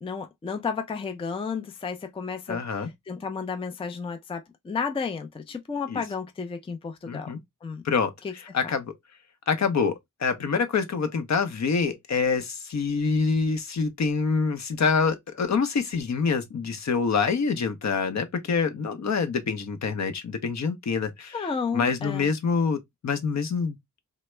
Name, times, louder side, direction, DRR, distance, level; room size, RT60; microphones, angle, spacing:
voice 1, 0.0-7.8 8.2-8.3 8.6-8.7 21.3-22.3, left 5 dB, 20° left, 0.4 m, -32 dB
voice 2, 2.5-2.9 5.9-6.0 7.1-7.4 7.8-8.1 8.5-8.9 9.5-21.5 21.7-23.7, left 5 dB, 60° left, 0.7 m, -26 dB
3.3 x 2.0 x 3.1 m
wide cardioid pair, 125°, 32 cm